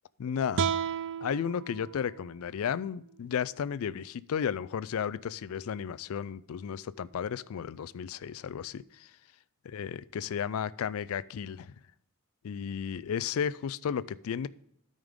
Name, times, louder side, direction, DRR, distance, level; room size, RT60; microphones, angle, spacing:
voice 1, 0.2-0.7 1.2-9.1 9.7-11.7 12.4-14.5, left 7 dB, 70° left, 18 dB, 0.3 m, -33 dB
sound 1, 0.5-3.7, right 7 dB, 55° right, 0.3 m, -35 dB
12.5 x 5.3 x 3.6 m, 0.74 s
head